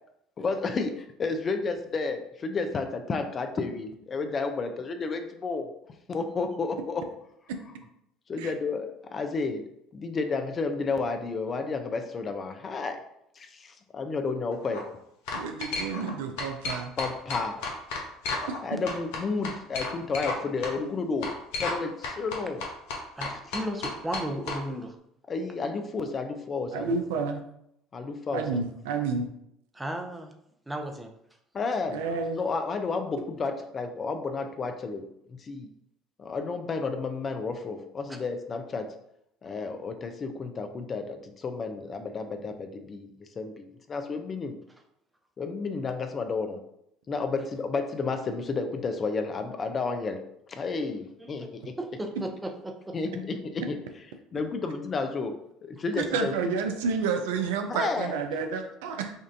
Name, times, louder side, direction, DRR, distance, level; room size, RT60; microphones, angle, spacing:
voice 1, 0.4-0.9 1.2-5.7 6.1-7.1 8.3-9.6 9.9-13.0 13.4-14.9 17.0-17.6 18.6-21.3 21.6-22.6 25.3-27.2 27.9-28.6 31.5-32.0 32.3-35.7 36.2-38.9 39.4-44.6 45.4-46.6 47.1-50.2 50.5-51.7 52.9-53.1 53.7-53.8 54.3-55.3 55.6-56.5 57.7-58.2, left 4 dB, 35° left, 6 dB, 0.5 m, -31 dB
sound 1, 14.5-14.8 15.3-16.1 16.4-18.6 18.9-20.4 20.6-20.7 21.2-21.8 22.0-24.6, left 3 dB, 70° left, 0.8 m, -33 dB
voice 2, 15.3-16.9 18.7-18.8 26.7-27.4 28.3-29.3 31.9-32.4 56.0-59.1, right 5 dB, 70° right, 5 dB, 0.5 m, -30 dB
voice 3, 23.2-25.0 29.7-30.3 30.7-31.1 38.1-38.2 51.2-51.5 51.8-52.7, right 1 dB, 10° right, 4 dB, 0.7 m, -34 dB
5.2 x 2.5 x 2.6 m, 0.76 s
hypercardioid pair, 65°, 0 cm